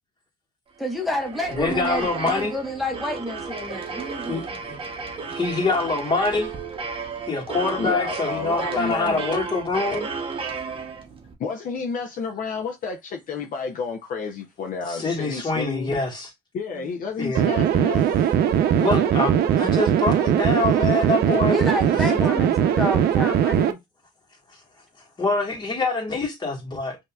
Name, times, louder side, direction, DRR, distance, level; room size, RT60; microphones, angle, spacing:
voice 1, 0.8-4.6 16.8-17.0 21.5-23.8, left 1 dB, ahead, 1.1 m, -29 dB
sound 1, 0.9-11.3, right 5 dB, 35° right, 0.9 m, -33 dB
voice 2, 1.5-2.5 4.3-4.8 5.3-6.5 7.3-10.1 14.9-16.3 17.2-17.5 18.8-22.5 25.2-27.0, left 3 dB, 25° left, 1.7 m, -25 dB
voice 3, 7.8-9.3 11.4-15.9 16.5-18.1, left 5 dB, 55° left, 0.7 m, -30 dB
sound 2, 17.3-23.7, right 9 dB, 70° right, 0.6 m, -20 dB
5.4 x 2.8 x 2.3 m
cardioid pair, 110°, 17 cm